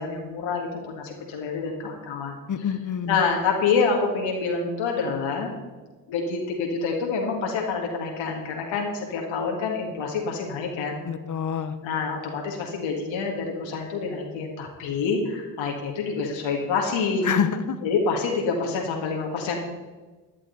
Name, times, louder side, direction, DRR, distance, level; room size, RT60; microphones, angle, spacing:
voice 1, 0.0-2.7 3.1-5.5 6.1-11.0 11.8-17.3 17.8-19.6, left 5 dB, 65° left, 0 dB, 2.0 m, -27 dB
voice 2, 2.5-3.2 11.0-11.7 17.2-17.8, left 7 dB, 40° left, 11 dB, 1.1 m, -26 dB
13.5 x 10.0 x 4.0 m, 1.3 s
hypercardioid pair, 45°, 49 cm